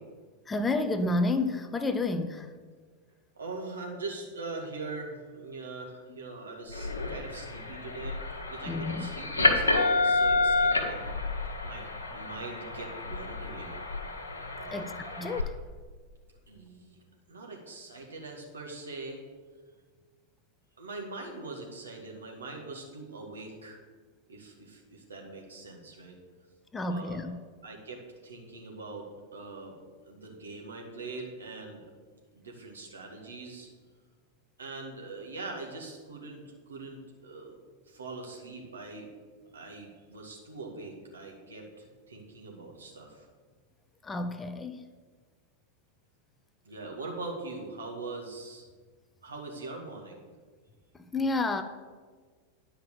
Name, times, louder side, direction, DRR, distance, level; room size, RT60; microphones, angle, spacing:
voice 1, 0.5-2.5 6.1-6.2 8.6-9.1 14.7-15.6 26.7-27.4 44.0-44.9 50.9-51.6, left 2 dB, 15° left, 9 dB, 0.6 m, -30 dB
voice 2, 3.3-8.2 8.5-11.2 11.6-11.9 12.1-13.8 14.6-14.9 16.5-17.0 17.3-19.2 20.8-23.8 24.3-26.2 26.9-27.2 27.6-29.8 30.0-31.8 32.3-33.7 34.6-37.6 37.9-39.1 39.5-43.3 46.7-48.6 49.2-50.2, right 3 dB, 70° right, 0 dB, 2.0 m, -42 dB
sound 1, 6.7-15.4, left 2 dB, 75° left, 1.4 m, -29 dB
10.5 x 5.7 x 6.9 m, 1.5 s
figure-of-eight pair, 90°, 0 cm